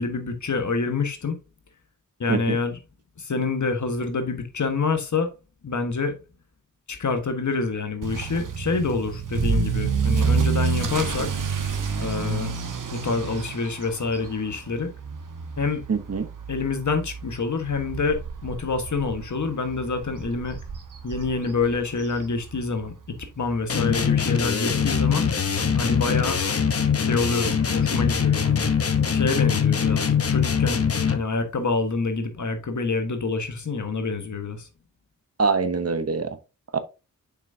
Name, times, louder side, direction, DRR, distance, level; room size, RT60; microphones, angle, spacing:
voice 1, 0.0-1.4 2.2-2.8 3.2-5.3 5.6-6.2 6.9-11.3 12.0-12.5 12.9-14.9 15.6-15.8 16.5-20.6 21.0-25.3 25.8-26.4 27.1-28.7 29.1-30.8 31.1-34.7, left 4 dB, 60° left, 1.5 m, -27 dB
Motor vehicle (road) / Accelerating revving vroom, 8.0-22.9 23.2-23.6 24.1-24.2 24.5-24.6 24.8-24.9 26.2-26.3, right 5 dB, 75° right, 1.3 m, -29 dB
voice 2, 15.9-16.3 35.4-36.4 36.7-36.8, right 4 dB, 50° right, 1.0 m, -24 dB
sound 1, 23.7-31.3, left 7 dB, 45° left, 0.9 m, -22 dB
7.2 x 6.1 x 2.7 m
wide cardioid pair, 95°, 33 cm